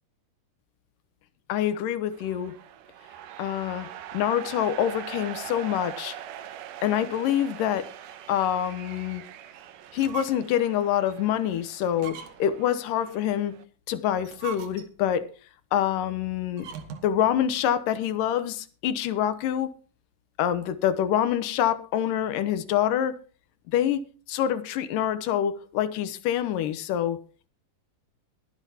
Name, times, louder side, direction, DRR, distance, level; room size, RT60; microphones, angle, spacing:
voice 1, 1.5-2.5 3.4-3.9 4.1-6.2 6.8-7.8 8.3-9.2 9.9-13.5 13.9-15.3 15.7-16.7 17.0-19.7 20.4-23.1 23.7-24.0 24.3-27.2, left 10 dB, 85° left, 2.6 m, -26 dB
sound 1, 2.1-13.6, right 11 dB, 85° right, 2.5 m, -43 dB
sound 2, 9.9-10.6 11.1-11.2 11.9-12.6 14.1-15.1 16.5-17.2, right 7 dB, 70° right, 2.9 m, -40 dB
22.0 x 8.0 x 2.9 m
omnidirectional pair, 3.7 m